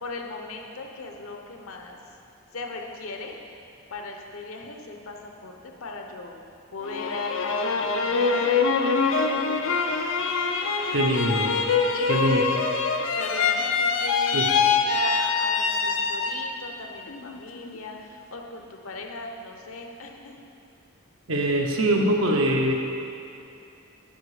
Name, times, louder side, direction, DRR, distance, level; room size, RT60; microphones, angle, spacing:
voice 1, 0.0-2.0 2.5-3.3 3.9-6.4 6.7-10.0 11.9-12.6 13.2-14.4 14.7-20.3, left 3 dB, 85° left, 2 dB, 0.9 m, -38 dB
sound 1, 6.8-16.7 17.1-17.8, left 4 dB, 65° left, 0.5 m, -24 dB
voice 2, 10.9-11.6 12.1-12.4 14.3-14.5 21.3-22.7, right 1 dB, 75° right, 1 dB, 1.0 m, -23 dB
9.2 x 5.5 x 5.0 m, 2.7 s
head